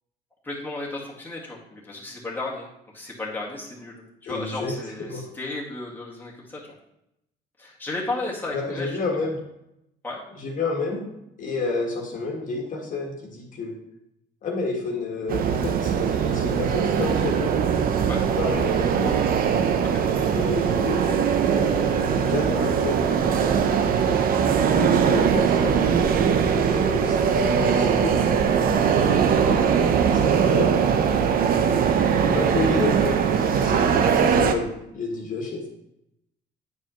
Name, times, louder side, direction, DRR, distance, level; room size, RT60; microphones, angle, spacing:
voice 1, 0.4-2.7 2.9-6.6 7.6-9.0 10.0-10.2 18.1-18.2 19.8-20.1, left 2 dB, 10° left, -5 dB, 1.8 m, -34 dB
voice 2, 4.3-5.2 8.5-9.4 10.3-11.0 11.4-13.7 14.4-17.6 18.3-19.2 20.1-21.0 21.5-24.0 24.6-26.2 26.5-28.2 28.7-29.8 30.1-30.7 32.2-35.7, left 3 dB, 50° left, -1 dB, 1.6 m, -30 dB
sound 1, 15.3-34.5, right 7 dB, 60° right, 0.7 m, -21 dB
9.1 x 4.8 x 3.0 m, 0.82 s
cardioid pair, 110°, 17 cm